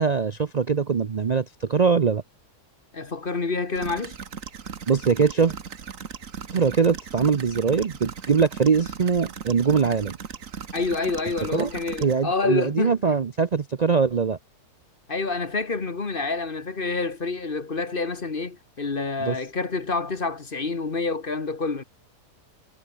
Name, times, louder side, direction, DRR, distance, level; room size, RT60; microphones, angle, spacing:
voice 1, 0.0-2.2 4.9-5.5 6.5-10.2 11.5-11.7 12.0-14.4 19.2-19.4, right 5 dB, 75° right, 0.3 m, -22 dB
voice 2, 2.9-4.2 10.7-13.0 15.1-21.8, left 3 dB, 35° left, 1.6 m, -28 dB
sound 1, 3.8-12.1, right 7 dB, 55° right, 1.7 m, -38 dB
omnidirectional pair, 1.7 m